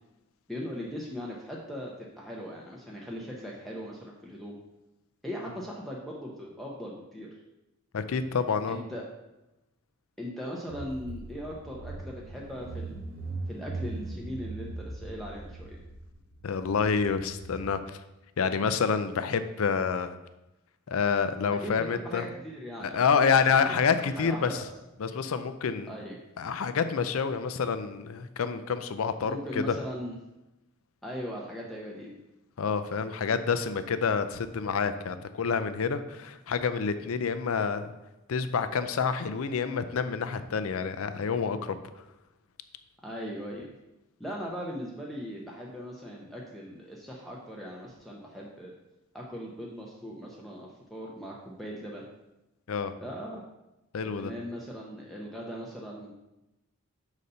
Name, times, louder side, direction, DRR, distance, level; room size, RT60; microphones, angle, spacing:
voice 1, 0.5-4.6 5.2-7.3 8.7-9.0 10.2-12.9 13.5-15.8 21.6-23.0 23.5-23.8 24.2-24.7 25.9-26.2 29.2-30.2 31.0-32.2 43.0-43.7 44.2-48.7 49.1-52.0 53.0-53.4 54.2-56.1, equal, ahead, -3 dB, 0.6 m, -39 dB
voice 2, 7.9-8.8 16.4-18.0 18.4-20.1 20.9-22.3 22.8-24.6 25.0-25.9 26.4-29.6 32.6-37.9 38.3-41.7 52.7-52.9 53.9-54.3, left 6 dB, 80° left, 11 dB, 0.5 m, -28 dB
Car / Engine, 10.7-17.7, right 3 dB, 45° right, 0.8 m, -40 dB
6.5 x 4.1 x 5.4 m, 0.97 s
head